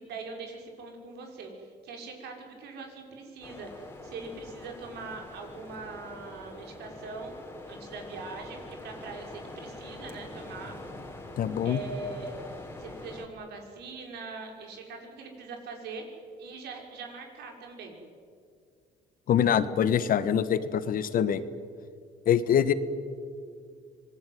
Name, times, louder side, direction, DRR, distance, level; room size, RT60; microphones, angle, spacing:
voice 1, 0.0-7.4 7.7-10.7 11.6-12.4 12.8-16.0 16.4-18.0, right 4 dB, 75° right, 2 dB, 5.9 m, -42 dB
sound 1, 3.4-13.3, left 2 dB, 15° left, 3.8 m, -44 dB
voice 2, 11.4-11.8 19.3-21.4 22.2-22.7, left 9 dB, 55° left, 13 dB, 1.5 m, -24 dB
26.0 x 20.5 x 9.5 m, 2.2 s
cardioid pair, 110°, 17 cm